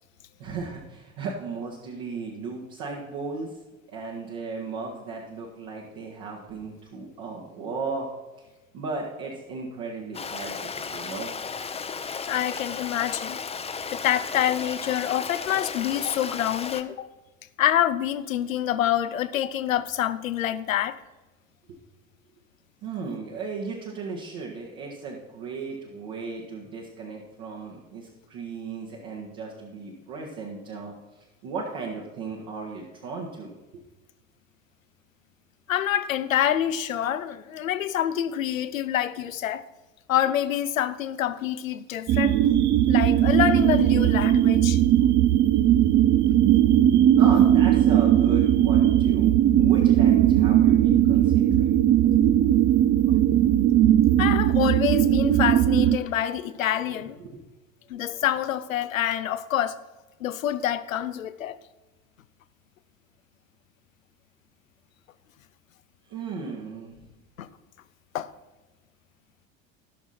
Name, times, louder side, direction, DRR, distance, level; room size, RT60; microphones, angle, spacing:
voice 1, 0.4-3.5 3.9-8.1 8.4-8.5 8.7-11.3 22.8-33.5 47.2-51.7 57.2-57.4 66.1-66.9, right 4 dB, 55° right, 1.8 m, -36 dB
Stream, 10.1-16.8, left 5 dB, 15° left, 0.7 m, -34 dB
voice 2, 12.3-13.4 13.9-17.1 17.6-21.0 35.7-39.6 40.1-42.4 42.9-44.8 54.2-57.2 57.9-59.8 60.2-61.6 67.4-67.5 68.1-68.3, left 11 dB, 80° left, 0.6 m, -26 dB
sound 1, 42.1-56.0, right 11 dB, 30° right, 0.4 m, -19 dB
17.0 x 6.1 x 4.3 m
figure-of-eight pair, 70°, 40 cm